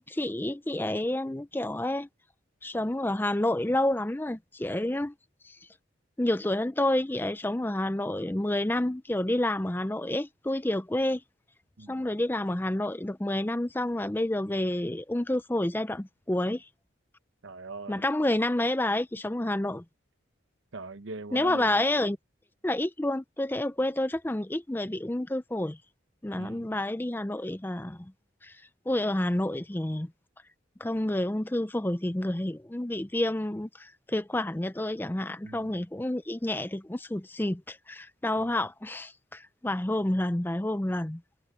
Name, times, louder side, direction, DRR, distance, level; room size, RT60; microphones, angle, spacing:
voice 1, 0.0-2.1 2.6-5.1 5.4-5.6 6.2-11.2 11.9-16.7 17.9-19.8 21.3-22.2 22.6-25.8 26.2-28.1 28.4-28.5 28.9-30.1 30.8-41.2, left 1 dB, 10° left, 0.4 m, -29 dB
voice 2, 17.4-18.0 20.7-21.8 26.4-26.7 35.4-35.7, right 3 dB, 75° right, 0.9 m, -42 dB
head